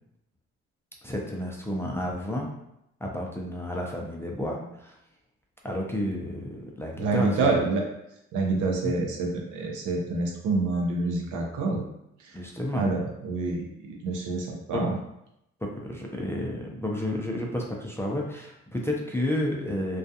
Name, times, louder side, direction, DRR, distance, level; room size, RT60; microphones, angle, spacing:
voice 1, 1.0-2.5 3.0-5.0 5.6-7.6 8.8-8.9 12.3-12.9 14.7-14.8 15.6-20.0, left 1 dB, 10° left, -1 dB, 0.4 m, -31 dB
voice 2, 7.0-7.8 8.3-11.8 12.2-12.4 12.7-15.0, right 3 dB, 85° right, 0 dB, 0.7 m, -27 dB
2.3 x 2.3 x 2.7 m, 0.82 s
cardioid pair, 90°, 30 cm